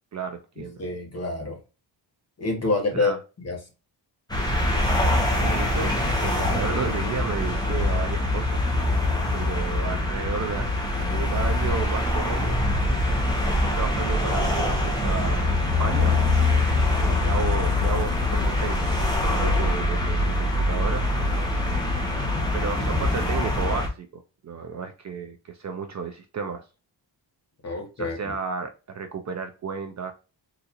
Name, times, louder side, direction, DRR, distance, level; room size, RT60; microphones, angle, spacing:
voice 1, 0.1-0.8 2.9-3.2 5.4-8.6 9.3-12.6 13.4-16.2 17.0-18.9 19.2-21.1 22.5-26.7 28.0-30.1, right 5 dB, 40° right, 0.4 m, -33 dB
voice 2, 0.8-1.6 2.4-3.1 3.4-3.6 27.6-28.4, left 3 dB, 35° left, 1.0 m, -27 dB
sound 1, 4.3-23.9, left 2 dB, 10° left, 0.7 m, -24 dB
3.8 x 2.4 x 2.8 m
wide cardioid pair, 180°, 43 cm